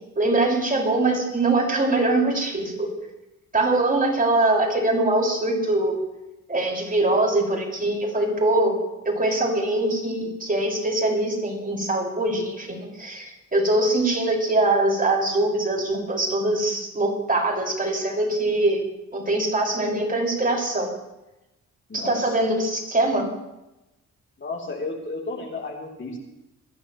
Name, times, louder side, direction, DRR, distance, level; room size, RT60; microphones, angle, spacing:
voice 1, 0.2-2.9 3.5-6.0 6.5-8.7 9.1-18.8 19.1-20.9 21.9-23.2, right 2 dB, 25° right, -1 dB, 5.8 m, -23 dB
voice 2, 21.9-22.3 24.4-26.2, left 3 dB, 35° left, -1 dB, 3.5 m, -33 dB
22.5 x 15.0 x 3.2 m, 0.95 s
cardioid pair, 75°, 31 cm